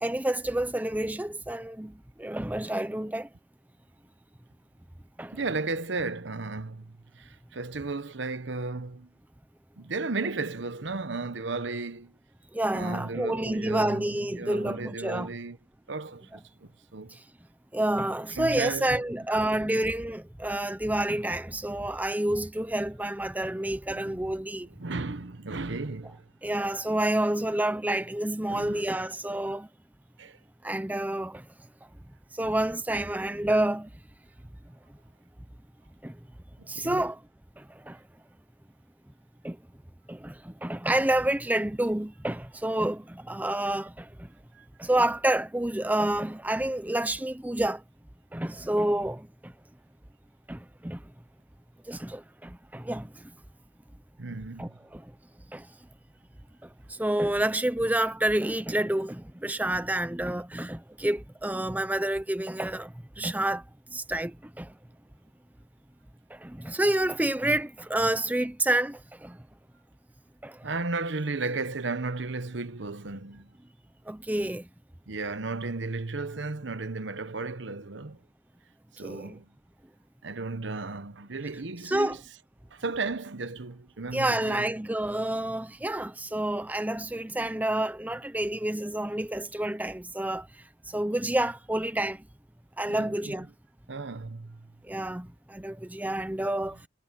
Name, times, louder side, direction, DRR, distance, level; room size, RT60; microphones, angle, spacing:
voice 1, 0.0-3.3 5.2-5.4 12.5-15.3 17.1-17.2 17.7-24.7 26.4-29.7 30.6-31.5 32.3-33.9 36.0-36.2 36.7-37.2 37.6-38.0 39.4-39.6 40.1-44.3 44.8-47.8 48.3-49.5 50.5-51.0 51.8-53.3 54.6-55.1 55.5-55.7 56.6-63.6 63.9-64.7 66.3-69.4 70.4-70.7 74.1-74.7 79.0-79.4 81.8-82.2 84.1-92.2 92.8-93.5 94.8-96.8, right 1 dB, 10° right, 0.7 m, -29 dB
voice 2, 5.3-9.1 9.8-12.1 12.7-15.6 15.9-17.2 18.4-19.0 19.6-19.7 23.9-24.2 24.6-26.3 28.5-28.9 30.2-30.4 36.7-37.1 44.5-44.7 54.2-54.8 70.6-73.5 75.1-78.2 78.9-79.5 80.2-82.2 82.7-84.7 92.9-93.5 93.9-94.7, right 3 dB, 65° right, 1.0 m, -34 dB
head